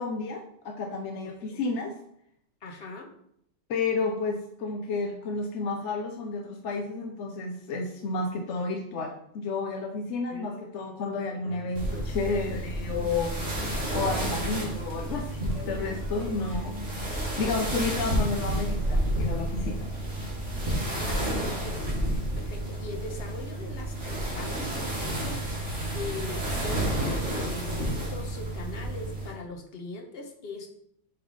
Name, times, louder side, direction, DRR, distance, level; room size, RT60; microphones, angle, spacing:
voice 1, 0.0-2.0 3.7-13.3 13.9-16.8 17.0-19.9, left 3 dB, 75° left, 3 dB, 1.0 m, -31 dB
voice 2, 2.6-3.1 10.3-10.7 20.9-25.6 25.9-30.7, left 3 dB, 55° left, 3 dB, 1.1 m, -41 dB
sound 1, 11.4-19.4, left 1 dB, ahead, 1.2 m, -46 dB
sound 2, 11.8-29.3, right 1 dB, 75° right, 2.0 m, -30 dB
7.2 x 3.3 x 3.9 m, 0.71 s
omnidirectional pair, 1.2 m